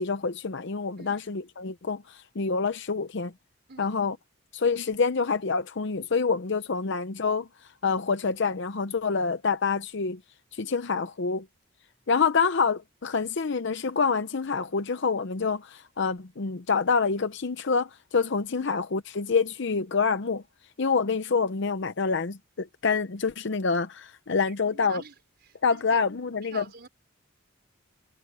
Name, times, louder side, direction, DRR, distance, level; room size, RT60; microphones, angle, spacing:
voice 1, 0.0-3.3 3.8-4.2 4.5-7.5 7.8-10.2 10.5-11.5 12.1-20.4 20.8-25.0 25.6-26.6, left 5 dB, 60° left, 0.7 m, -27 dB
voice 2, 3.7-4.0 18.6-18.7 24.5-25.1 25.4-26.0 26.4-26.9, right 5 dB, 50° right, 5.1 m, -46 dB
head